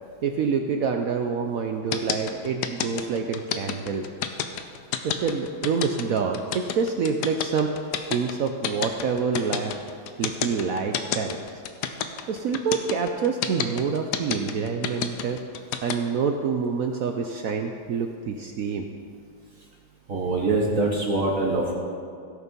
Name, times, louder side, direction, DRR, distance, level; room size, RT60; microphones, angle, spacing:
voice 1, 0.2-4.1 5.0-7.8 8.1-9.7 10.2-11.6 12.3-15.4 15.8-18.9, right 5 dB, 80° right, 5 dB, 0.7 m, -27 dB
sound 1, 1.9-15.9, left 9 dB, 70° left, 1.1 m, -28 dB
voice 2, 20.1-21.7, right 2 dB, 45° right, -1 dB, 1.4 m, -24 dB
16.0 x 6.7 x 5.3 m, 2.3 s
omnidirectional pair, 2.1 m